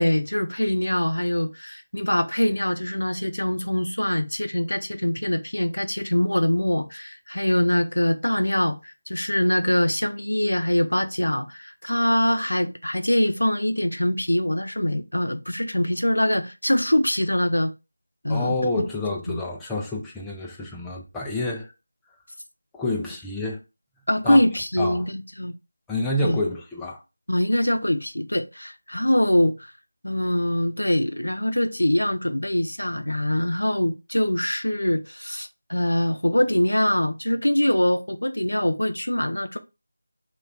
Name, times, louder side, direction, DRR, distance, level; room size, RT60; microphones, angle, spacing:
voice 1, 0.0-17.7 18.2-18.6 19.3-19.4 24.1-25.5 26.2-26.4 27.3-29.5 30.0-39.6, left 1 dB, 80° left, 0.5 m, -23 dB
voice 2, 18.3-21.7 22.7-23.6 24.2-24.4 24.8-25.1 25.9-27.0, left 2 dB, 5° left, 0.3 m, -28 dB
3.2 x 2.3 x 3.3 m
figure-of-eight pair, 165°, 0 cm